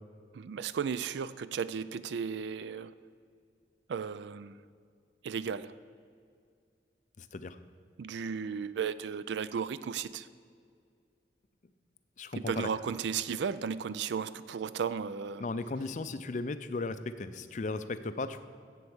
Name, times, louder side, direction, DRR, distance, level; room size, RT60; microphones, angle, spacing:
voice 1, 0.3-2.9 3.9-4.5 5.2-5.7 8.0-10.3 12.3-15.4, right 6 dB, 75° right, 15 dB, 0.4 m, -35 dB
voice 2, 7.2-7.6 12.2-12.7 15.4-18.5, left 3 dB, 45° left, 12 dB, 0.4 m, -36 dB
7.9 x 7.7 x 7.1 m, 2.2 s
head